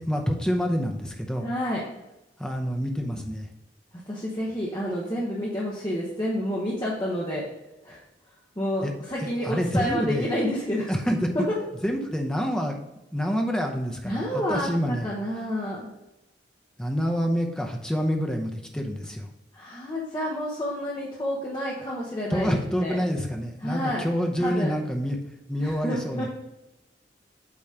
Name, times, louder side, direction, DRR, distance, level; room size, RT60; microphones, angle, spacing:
voice 1, 0.0-1.5 2.4-3.5 8.8-8.9 9.2-10.3 10.9-11.5 11.8-12.8 13.1-15.1 16.8-19.3 22.3-25.2 25.5-26.3, equal, 5° left, 2 dB, 0.7 m, -27 dB
voice 2, 1.4-1.8 4.1-7.4 7.8-8.0 8.6-10.9 14.0-15.9 19.5-23.0 23.6-24.1 24.4-24.8 25.6-26.3, equal, 25° left, -5 dB, 1.1 m, -29 dB
8.6 x 3.1 x 4.9 m, 0.94 s
head